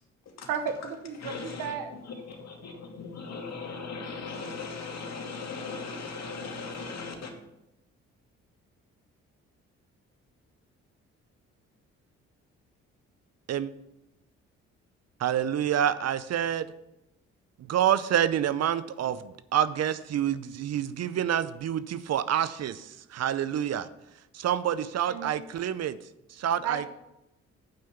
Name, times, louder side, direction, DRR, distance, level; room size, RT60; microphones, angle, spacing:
voice 1, 0.5-1.9 25.1-25.3 26.6-26.9, right 7 dB, 85° right, 8 dB, 1.1 m, -33 dB
voice 2, 1.2-1.8 2.0-7.3, left 4 dB, 60° left, 2 dB, 2.4 m, -38 dB
voice 3, 15.2-16.7 17.7-23.9 24.3-26.0 26.3-26.8, right 10 dB, 55° right, 15 dB, 0.6 m, -27 dB
9.0 x 5.5 x 6.8 m, 0.90 s
supercardioid pair, 60°, 30 cm